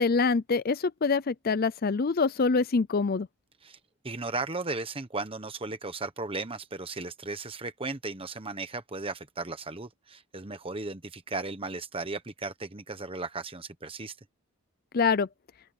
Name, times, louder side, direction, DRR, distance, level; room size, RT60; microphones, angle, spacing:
voice 1, 0.0-3.3 14.9-15.3, left 4 dB, 40° left, 0.5 m, -25 dB
voice 2, 4.0-14.2, right 3 dB, 25° right, 1.2 m, -36 dB
open air
head